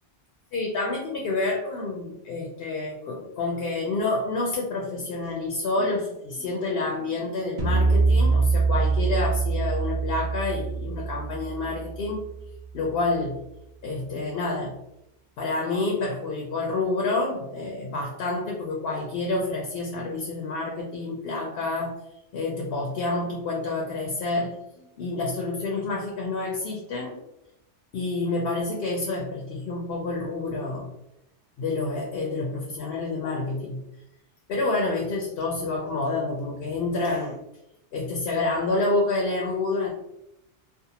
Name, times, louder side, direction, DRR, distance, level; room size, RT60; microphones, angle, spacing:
voice 1, 0.5-12.2 12.7-13.4 13.8-14.8 15.4-21.9 22.3-27.2 27.9-30.9 31.6-33.8 34.5-37.4 37.9-39.9, left 2 dB, 65° left, -1 dB, 0.7 m, -28 dB
sound 1, 7.6-12.9, right 4 dB, 70° right, 0.3 m, -24 dB
2.5 x 2.4 x 2.8 m, 0.85 s
omnidirectional pair, 1.2 m